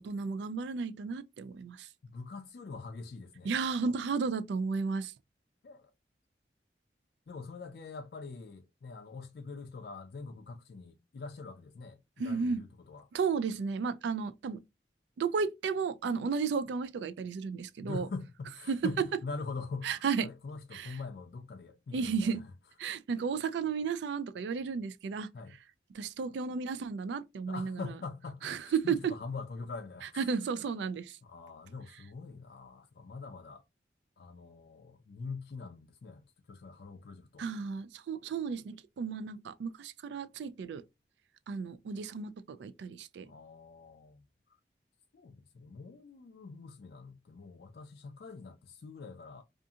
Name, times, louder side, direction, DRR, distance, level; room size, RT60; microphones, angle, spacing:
voice 1, 0.0-1.9 3.4-5.1 12.2-12.6 13.1-14.6 15.2-18.1 18.7-18.8 19.8-20.3 20.7-21.0 21.9-22.4 22.8-25.3 25.9-27.8 28.4-29.1 30.2-31.2 37.4-40.8 41.5-43.3, right 5 dB, 85° right, 0.3 m, -33 dB
voice 2, 2.0-3.5 3.8-4.0 5.6-5.9 7.3-13.1 17.8-22.5 25.3-25.6 27.5-30.3 31.2-33.6 34.2-37.5 43.2-44.2 45.1-49.4, left 4 dB, 60° left, 0.4 m, -44 dB
2.7 x 2.4 x 2.3 m
head